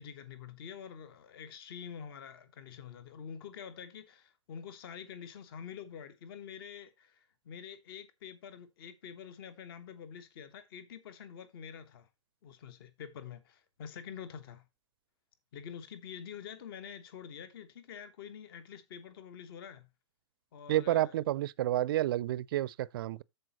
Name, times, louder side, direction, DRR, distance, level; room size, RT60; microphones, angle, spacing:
voice 1, 0.0-12.1 12.4-14.6 15.5-19.9 20.5-21.1, left 7 dB, 50° left, 1.1 m, -47 dB
voice 2, 20.7-23.2, right 14 dB, 45° right, 0.4 m, -30 dB
13.5 x 4.5 x 2.9 m
figure-of-eight pair, 110°, 16 cm